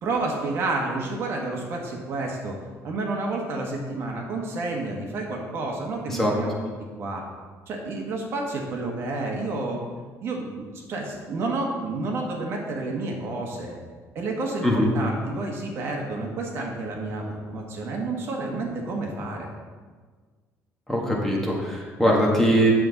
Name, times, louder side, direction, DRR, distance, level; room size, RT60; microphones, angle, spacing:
voice 1, 0.0-2.6 2.8-6.6 7.0-7.2 7.7-9.8 10.2-10.6 10.9-13.8 14.1-19.5, right 2 dB, 45° right, 0 dB, 1.3 m, -30 dB
voice 2, 20.9-22.7, equal, 5° left, -3 dB, 1.2 m, -21 dB
8.7 x 7.1 x 3.9 m, 1.5 s
cardioid pair, 175°, 6 cm